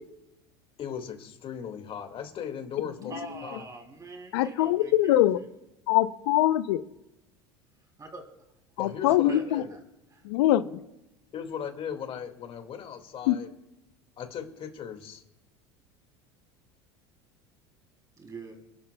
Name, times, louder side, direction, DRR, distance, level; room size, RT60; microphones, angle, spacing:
voice 1, 0.8-3.2 3.4-3.7 8.8-9.7 11.3-13.5 14.2-15.2, left 8 dB, 45° left, 6 dB, 2.0 m, -37 dB
voice 2, 3.1-5.5 8.0-8.2 9.1-9.8 10.1-10.2 18.2-18.5, right 3 dB, 25° right, 3 dB, 3.0 m, -44 dB
voice 3, 4.3-5.4 5.9-6.8 8.8-9.6 10.2-10.6 13.3-13.4, left 14 dB, 75° left, 12 dB, 0.6 m, -23 dB
28.0 x 11.5 x 2.3 m, 0.92 s
hypercardioid pair, 90°, 13 cm